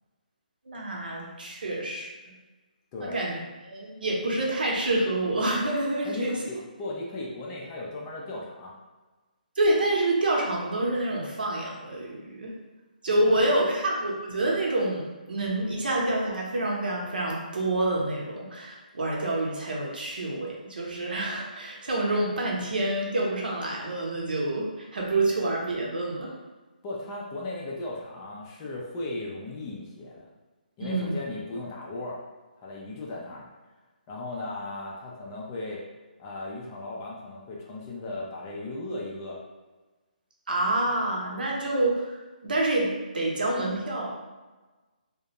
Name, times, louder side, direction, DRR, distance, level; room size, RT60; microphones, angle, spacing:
voice 1, 0.7-2.1 3.0-6.4 9.6-12.5 13.0-26.3 30.8-31.2 40.5-44.1, right 2 dB, 75° right, -2 dB, 0.8 m, -27 dB
voice 2, 2.9-3.2 6.0-8.7 13.3-13.4 26.8-30.3 30.8-32.2 32.6-33.5 34.1-35.8 36.2-39.4, left 2 dB, 20° left, -3 dB, 0.4 m, -36 dB
2.4 x 2.1 x 2.8 m, 1.2 s
hypercardioid pair, 160°, 5 cm